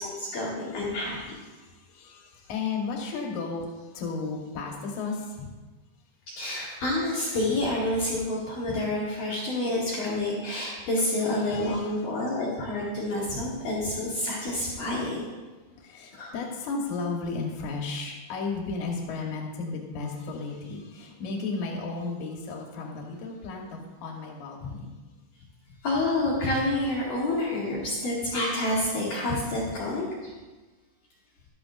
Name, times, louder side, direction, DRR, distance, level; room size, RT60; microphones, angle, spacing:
voice 1, 0.0-1.2 6.3-15.2 16.1-16.3 25.8-30.3, left 1 dB, 55° left, -8 dB, 3.1 m, -28 dB
voice 2, 0.9-5.4 11.4-12.3 15.8-24.9, left 4 dB, 90° left, 0 dB, 1.7 m, -34 dB
14.0 x 12.5 x 2.5 m, 1.2 s
omnidirectional pair, 5.4 m